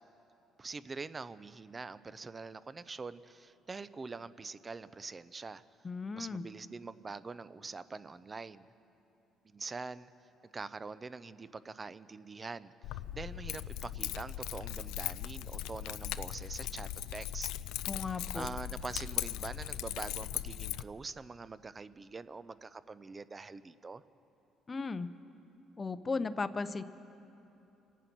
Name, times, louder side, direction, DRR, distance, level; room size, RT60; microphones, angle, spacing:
voice 1, 0.6-5.6 6.1-8.7 9.4-10.1 10.5-12.7 13.1-17.5 18.3-24.0, right 4 dB, 25° right, 15 dB, 0.5 m, -44 dB
voice 2, 5.8-6.4 17.9-18.5 24.7-25.1 25.8-26.8, left 4 dB, 25° left, 12 dB, 0.6 m, -36 dB
Keys jangling, 12.8-20.8, left 13 dB, 85° left, 0.3 m, -39 dB
26.0 x 9.2 x 6.0 m, 2.9 s
cardioid pair, 95°, 0 cm